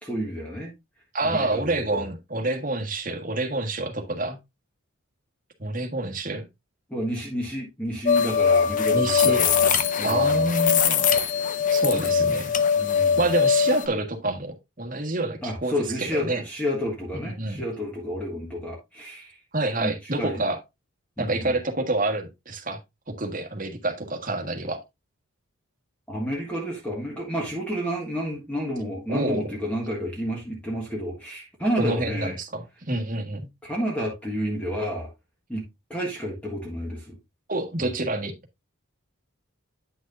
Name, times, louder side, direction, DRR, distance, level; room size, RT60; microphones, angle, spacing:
voice 1, 0.0-0.7 1.2-2.0 6.9-10.4 11.9-12.1 12.8-13.2 15.4-19.4 19.8-20.4 21.2-21.5 26.1-32.3 33.6-35.1 35.5-37.1 37.8-37.9, equal, 5° left, 1.5 m, -30 dB
voice 2, 1.1-4.4 5.6-6.5 8.9-9.5 10.0-11.1 11.7-12.5 13.2-16.4 17.2-17.6 19.5-20.6 21.2-22.8 23.2-24.8 29.1-29.5 31.8-33.5 37.5-38.3, right 2 dB, 40° right, 1.4 m, -27 dB
sound 1, 8.1-13.9, left 6 dB, 35° left, 0.6 m, -21 dB
9.3 x 6.3 x 2.6 m
head